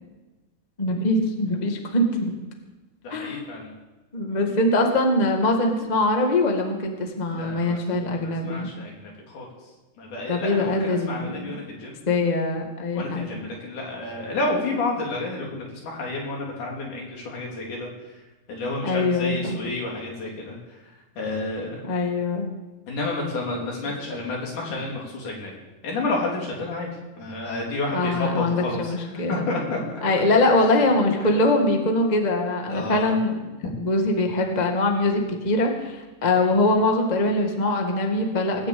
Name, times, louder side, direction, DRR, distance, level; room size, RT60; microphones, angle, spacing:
voice 1, 0.8-2.3 3.1-3.4 4.1-8.7 10.3-11.5 12.1-13.4 18.8-19.6 21.8-22.5 27.9-29.5 30.0-33.4 33.8-38.7, left 2 dB, 30° left, 3 dB, 0.7 m, -23 dB
voice 2, 3.0-3.7 7.3-9.5 10.0-12.0 12.9-17.9 18.5-20.8 21.2-21.8 22.9-25.5 25.8-26.9 27.2-29.8 31.2-31.3 32.7-33.1, left 2 dB, 65° left, -2 dB, 4.7 m, -30 dB
19.0 x 7.1 x 8.5 m, 1.1 s
omnidirectional pair, 3.9 m